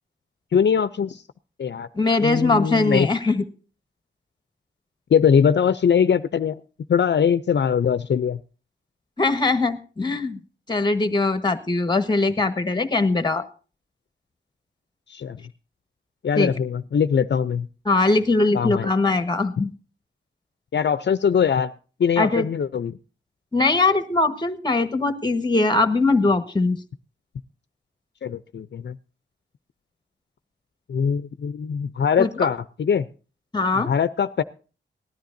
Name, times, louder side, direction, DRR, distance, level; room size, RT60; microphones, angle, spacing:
voice 1, 0.5-1.2 1.6-1.9 2.2-3.1 5.1-6.6 6.9-8.4 15.1-15.4 16.2-17.7 18.5-18.9 20.7-21.7 22.0-23.0 28.2-29.0 30.9-33.1 33.7-34.4, left 7 dB, 65° left, 13 dB, 0.5 m, -21 dB
voice 2, 1.9-3.4 9.2-10.4 10.7-13.4 16.4-16.5 17.8-19.7 22.2-22.5 23.5-26.8 32.2-32.3 33.5-33.9, left 3 dB, 20° left, 11 dB, 1.3 m, -21 dB
19.0 x 13.0 x 2.6 m, 0.36 s
wide cardioid pair, 135°, 20 cm